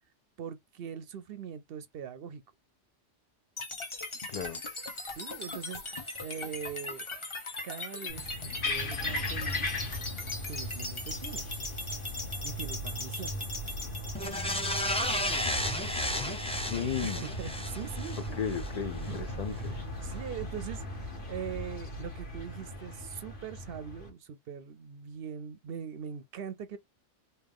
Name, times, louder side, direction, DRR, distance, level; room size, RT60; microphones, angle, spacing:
voice 1, 0.4-2.4 5.1-7.1 7.6-9.7 10.5-11.5 12.4-13.3 17.0-18.4 19.1-19.2 19.5-26.8, right 8 dB, 60° right, 0.7 m, -42 dB
sound 1, 3.6-15.6, left 2 dB, 25° left, 0.9 m, -40 dB
voice 2, 4.3-4.6 16.2-17.3 18.4-19.8, left 7 dB, 85° left, 0.3 m, -35 dB
sound 2, 8.1-24.1, left 1 dB, 45° left, 1.4 m, -38 dB
sound 3, 14.1-18.7 19.1-19.2, equal, 5° left, 0.6 m, -33 dB
3.4 x 2.7 x 3.4 m
omnidirectional pair, 1.3 m